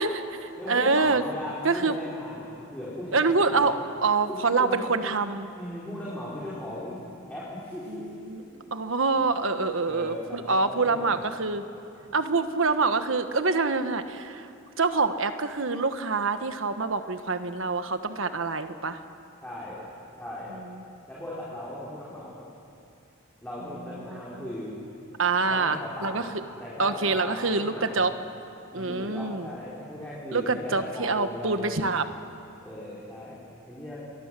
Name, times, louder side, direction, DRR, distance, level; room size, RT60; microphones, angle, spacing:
voice 1, 0.0-1.2 1.6-2.0 3.1-5.5 7.9-8.4 8.7-11.6 12.1-14.5 14.8-19.0 24.1-24.4 25.2-26.4 26.8-28.1 28.7-29.5 30.3-32.1, right 4 dB, 70° right, 9 dB, 1.3 m, -26 dB
voice 2, 0.6-3.6 4.3-4.9 5.5-7.0 7.3-8.1 8.5-8.6 9.1-9.4 9.8-11.2 12.0-12.2 19.4-19.9 20.2-20.5 21.1-22.4 23.4-24.8 25.5-26.3 26.6-28.0 28.7-31.7 32.6-34.0, left 1 dB, 5° left, -8 dB, 4.4 m, -38 dB
27.5 x 23.0 x 7.6 m, 2.8 s
head